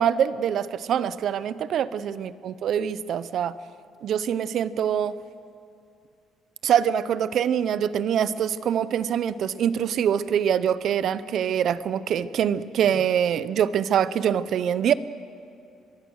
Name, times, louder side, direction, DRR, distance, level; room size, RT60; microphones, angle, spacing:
voice 1, 0.0-3.6 4.0-5.1 6.6-14.9, right 9 dB, 55° right, 16 dB, 0.7 m, -24 dB
24.0 x 22.5 x 6.4 m, 2.5 s
cardioid pair, 135°, 0 cm